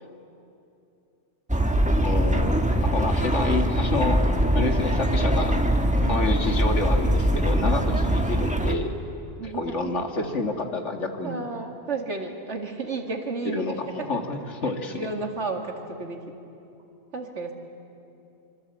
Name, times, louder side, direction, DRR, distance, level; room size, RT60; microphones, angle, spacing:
sound 1, 1.5-8.7, right 1 dB, 5° right, 1.2 m, -22 dB
voice 1, 2.0-2.5 2.8-4.2 4.5-5.6 6.1-8.9 9.4-11.4 13.5-15.1, left 3 dB, 75° left, 4 dB, 2.2 m, -28 dB
voice 2, 6.0-6.4 7.8-8.2 9.4-9.8 11.2-14.1 14.9-16.3 17.1-17.5, right 3 dB, 75° right, 3 dB, 2.5 m, -33 dB
25.5 x 25.0 x 8.4 m, 2.7 s
omnidirectional pair, 1.2 m